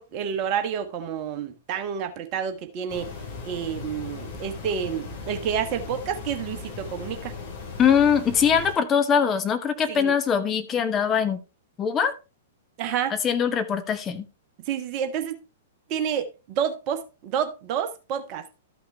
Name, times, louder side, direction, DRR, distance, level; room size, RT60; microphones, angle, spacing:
voice 1, 0.0-3.1 3.4-7.3 9.9-10.1 12.8-13.1 14.7-15.4 15.9-18.4, right 8 dB, 35° right, 1.2 m, -29 dB
sound 1, 2.9-8.7, left 5 dB, 40° left, 3.7 m, -38 dB
voice 2, 7.8-11.4 11.8-12.1 13.1-14.2, left 7 dB, 20° left, 0.9 m, -22 dB
13.0 x 5.8 x 3.3 m
figure-of-eight pair, 105°, 0 cm